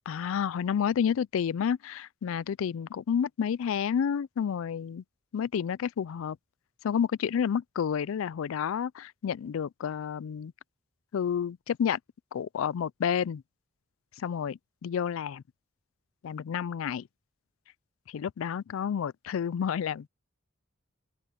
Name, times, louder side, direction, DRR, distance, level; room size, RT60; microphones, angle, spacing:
voice 1, 0.1-5.0 5.3-6.4 6.8-10.5 11.1-12.0 12.3-13.4 14.2-15.4 16.2-17.1 18.1-20.1, left 7 dB, 75° left, 0.3 m, -30 dB
open air
head